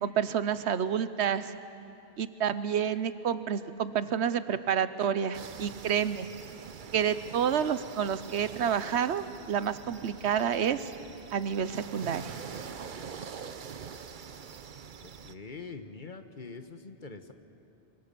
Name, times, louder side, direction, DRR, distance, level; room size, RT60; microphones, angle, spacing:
voice 1, 0.0-1.5 2.2-6.3 6.9-10.9 11.3-12.3, right 8 dB, 85° right, 13 dB, 1.1 m, -29 dB
sound 1, 5.3-15.3, right 6 dB, 50° right, 0.9 m, -44 dB
voice 2, 15.0-17.3, left 4 dB, 50° left, 7 dB, 1.3 m, -44 dB
25.0 x 24.0 x 6.9 m, 2.7 s
omnidirectional pair, 1.1 m